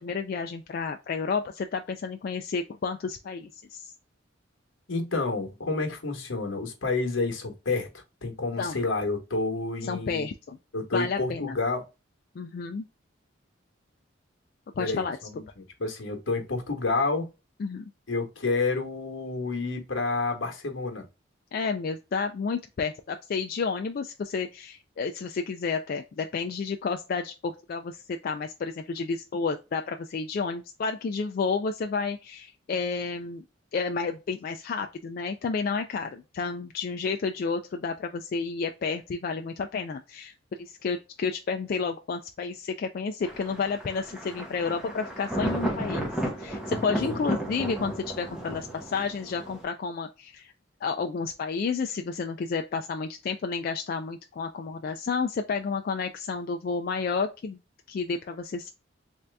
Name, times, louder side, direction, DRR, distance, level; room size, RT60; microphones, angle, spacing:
voice 1, 0.0-3.9 8.6-8.8 9.8-10.6 10.9-11.6 12.4-12.9 14.8-15.2 17.6-17.9 21.5-33.4 33.7-46.1 46.4-50.5 50.8-57.6 57.9-58.7, left 5 dB, 50° left, 0.3 m, -31 dB
voice 2, 4.9-10.2 10.7-11.9 14.8-17.3 18.1-21.1 46.7-47.8, left 3 dB, 80° left, 1.1 m, -30 dB
Thunder, 43.2-49.6, equal, 5° right, 0.9 m, -33 dB
3.3 x 2.7 x 3.3 m
head